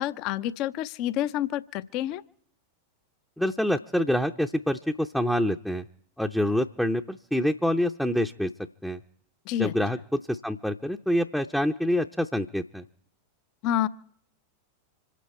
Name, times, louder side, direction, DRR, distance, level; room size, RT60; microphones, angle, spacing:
voice 1, 0.0-2.2 9.5-9.7 13.6-13.9, left 12 dB, 40° left, 16 dB, 0.6 m, -28 dB
voice 2, 3.4-5.8 6.2-8.5 8.8-9.0 9.6-12.8, equal, ahead, 3 dB, 0.6 m, -26 dB
26.5 x 9.3 x 4.4 m, 0.64 s
figure-of-eight pair, 90°, 0 cm